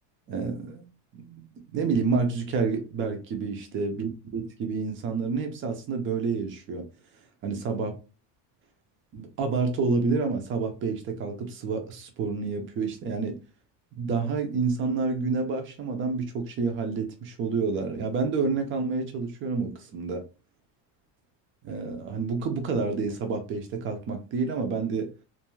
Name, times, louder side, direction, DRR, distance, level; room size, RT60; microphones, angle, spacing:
voice 1, 0.3-0.9 1.1-1.5 1.7-6.9 7.4-8.0 9.1-13.4 14.0-20.3 21.6-25.1, right 4 dB, 30° right, 0.4 m, -29 dB
2.5 x 2.3 x 3.0 m
cardioid pair, 165°, 43 cm